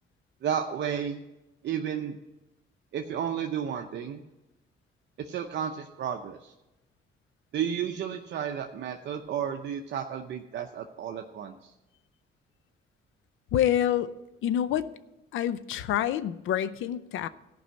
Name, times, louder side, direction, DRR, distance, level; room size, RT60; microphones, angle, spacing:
voice 1, 0.4-1.2 1.6-2.2 2.9-4.2 5.2-6.5 7.5-11.7, right 8 dB, 65° right, 4 dB, 0.7 m, -32 dB
voice 2, 13.5-14.1 14.4-14.9 15.3-17.3, left 11 dB, 80° left, 15 dB, 0.6 m, -27 dB
14.0 x 5.5 x 7.7 m, 0.99 s
cardioid pair, 90°, 20 cm